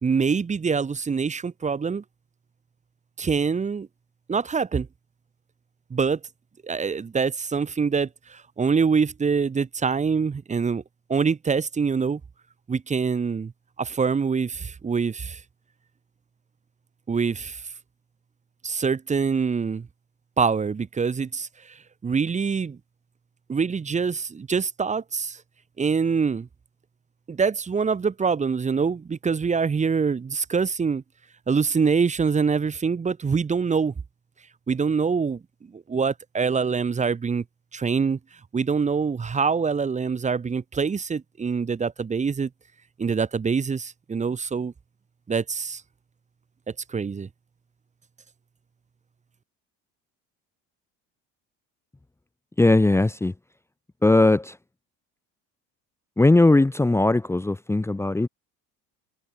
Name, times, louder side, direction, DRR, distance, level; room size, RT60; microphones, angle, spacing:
voice 1, 0.0-2.0 3.2-3.9 4.3-4.9 5.9-6.2 6.6-10.8 11.1-12.2 12.7-13.5 13.8-15.4 17.1-17.6 18.6-19.9 20.4-21.5 22.0-22.8 23.5-25.4 25.8-26.5 27.3-31.0 31.5-33.9 34.7-35.4 35.7-37.4 37.7-38.2 38.5-42.5 43.0-44.7 45.3-45.8 46.9-47.3, right 5 dB, 20° right, 1.7 m, -24 dB
voice 2, 52.6-53.3 54.0-54.5 56.2-58.3, left 2 dB, 10° left, 1.3 m, -19 dB
cardioid pair, 125°, 33 cm